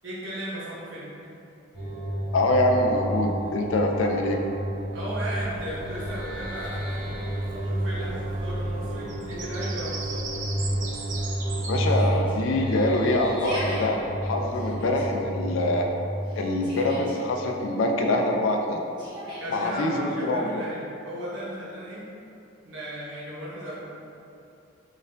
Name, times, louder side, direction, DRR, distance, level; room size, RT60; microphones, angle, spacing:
voice 1, 0.0-1.1 4.9-7.1 7.6-10.3 19.4-22.1 22.6-23.9, equal, 75° right, -7 dB, 0.9 m, -36 dB
sound 1, 1.7-17.2, right 1 dB, 5° left, 1.4 m, -31 dB
voice 2, 2.3-4.4 11.7-15.9 16.4-18.8 19.5-20.6, left 1 dB, 90° left, 2 dB, 0.4 m, -24 dB
Bird vocalization bird call bird song, 5.4-11.7, right 3 dB, 40° right, 0.4 m, -39 dB
Yell, 11.9-12.3 13.2-13.8 14.5-15.0 16.2-17.2 19.0-19.6, right 1 dB, 25° right, 1.0 m, -37 dB
4.0 x 2.4 x 2.6 m, 2.6 s
head